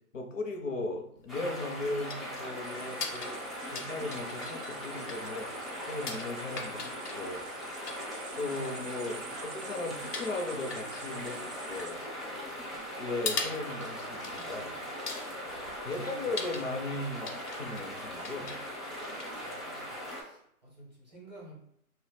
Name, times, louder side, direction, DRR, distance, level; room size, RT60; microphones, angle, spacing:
voice 1, 0.1-3.3 3.7-7.4 8.4-11.4 11.7-12.0 13.0-14.8 15.8-18.5, left 2 dB, 60° left, 2 dB, 0.6 m, -37 dB
sound 1, 1.2-20.2, left 4 dB, 85° left, 0.9 m, -43 dB
sound 2, 1.3-20.2, equal, ahead, 0.3 m, -40 dB
sound 3, 2.6-12.0, right 8 dB, 85° right, 0.5 m, -50 dB
voice 2, 15.8-16.2 19.4-21.5, right 1 dB, 30° right, -5 dB, 0.7 m, -53 dB
2.8 x 2.0 x 3.3 m, 0.71 s
hypercardioid pair, 175°, 45 cm